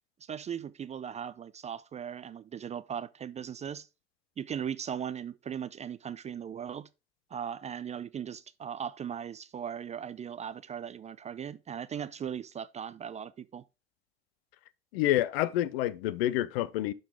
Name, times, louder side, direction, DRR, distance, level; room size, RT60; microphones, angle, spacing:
voice 1, 0.2-3.9 4.4-6.9 7.3-13.6, right 8 dB, 20° right, 0.4 m, -38 dB
voice 2, 14.9-16.9, left 14 dB, 65° left, 0.6 m, -28 dB
11.5 x 3.9 x 3.4 m
figure-of-eight pair, 60°, 32 cm